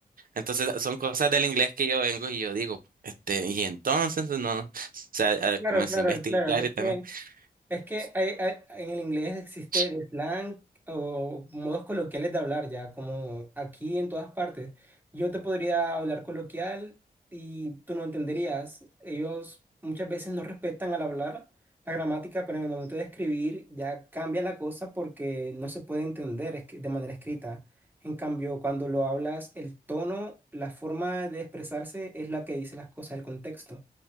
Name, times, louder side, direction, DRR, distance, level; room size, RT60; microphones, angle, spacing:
voice 1, 0.4-2.8 3.0-7.2 9.7-9.8, right 5 dB, 60° right, 0.6 m, -28 dB
voice 2, 5.6-7.0 7.7-10.6 10.9-16.9 17.3-19.6 19.8-21.4 21.9-27.6 28.0-33.8, right 1 dB, 10° right, 1.7 m, -32 dB
4.4 x 2.1 x 3.5 m
wide cardioid pair, 75°, 17 cm